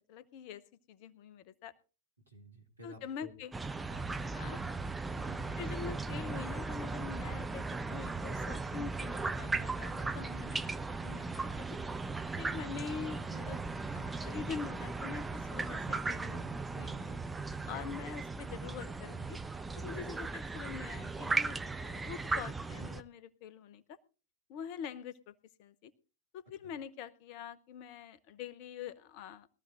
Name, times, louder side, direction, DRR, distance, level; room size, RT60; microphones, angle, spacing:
voice 1, 0.1-0.6 0.9-1.7 2.8-3.5 4.3-4.6 5.6-11.8 12.4-13.6 13.9-17.2 17.7-19.4 19.8-24.0 24.5-25.9 26.3-29.5, left 7 dB, 45° left, 16 dB, 0.8 m, -45 dB
voice 2, 2.3-3.3 3.9-4.8 5.1-5.6 26.6-26.7, right 1 dB, 85° right, 3 dB, 2.3 m, -54 dB
sound 1, 3.5-23.0, right 3 dB, 10° right, 0.6 m, -37 dB
21.5 x 13.5 x 2.5 m, 0.34 s
figure-of-eight pair, 90°, 0 cm